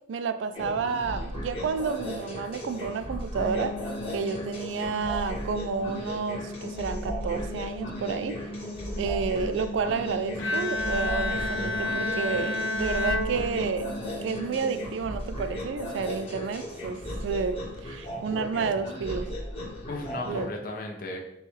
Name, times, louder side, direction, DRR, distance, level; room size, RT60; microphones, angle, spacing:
voice 1, 0.1-3.8 4.1-8.4 9.0-13.9 14.2-19.3 20.2-20.5, right 5 dB, 75° right, 11 dB, 0.3 m, -30 dB
sound 1, 0.5-20.4, equal, 30° left, 1.5 m, -36 dB
sound 2, 3.4-16.3, left 1 dB, 10° right, 0.9 m, -39 dB
Bowed string instrument, 10.4-14.1, left 2 dB, 85° left, 0.6 m, -30 dB
voice 2, 11.3-11.8 19.9-21.2, left 2 dB, 50° left, 1 dB, 0.7 m, -37 dB
5.6 x 2.3 x 3.1 m, 0.79 s
head